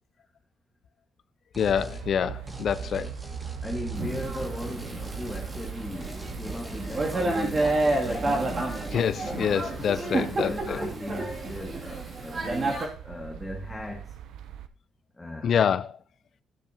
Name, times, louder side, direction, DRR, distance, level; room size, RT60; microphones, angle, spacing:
sound 1, 1.5-2.1 2.5-5.8 6.0-8.9, right 1 dB, 15° right, 1.5 m, -42 dB
voice 1, 1.6-3.1 8.9-10.8 15.4-16.0, left 8 dB, 60° left, 0.4 m, -26 dB
sound 2, 1.6-14.7, right 10 dB, 80° right, 0.7 m, -41 dB
voice 2, 3.6-8.4 10.0-14.2 15.1-15.6, left 1 dB, 10° left, 1.5 m, -37 dB
Thunder / Rain, 4.0-12.9, right 2 dB, 35° right, 2.5 m, -30 dB
13.0 x 7.0 x 2.8 m
cardioid pair, 90°, 0 cm